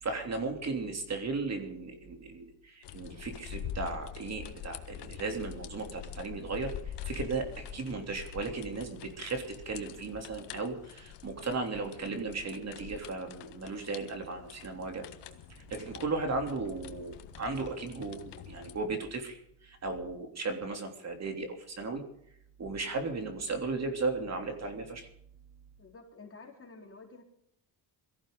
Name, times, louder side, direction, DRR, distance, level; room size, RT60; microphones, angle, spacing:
voice 1, 0.0-15.0 15.5-22.0 22.6-25.1, right 3 dB, 35° right, 4 dB, 3.2 m, -36 dB
sound 1, 2.8-18.8, left 9 dB, 70° left, 1.6 m, -45 dB
voice 2, 25.8-27.2, left 3 dB, 30° left, 1 dB, 4.1 m, -50 dB
23.0 x 15.0 x 3.9 m, 0.73 s
cardioid pair, 130°, 43 cm